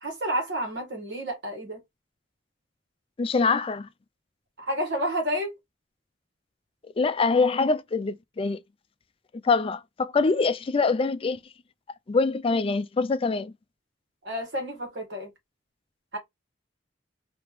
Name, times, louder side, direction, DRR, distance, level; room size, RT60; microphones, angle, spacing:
voice 1, 0.0-1.8 4.6-5.5 14.2-15.3 16.1-16.2, equal, 60° right, 1.6 m, -30 dB
voice 2, 3.2-3.9 7.0-8.6 9.4-11.4 12.1-13.5, left 4 dB, 30° left, 0.4 m, -24 dB
3.2 x 2.9 x 3.5 m
head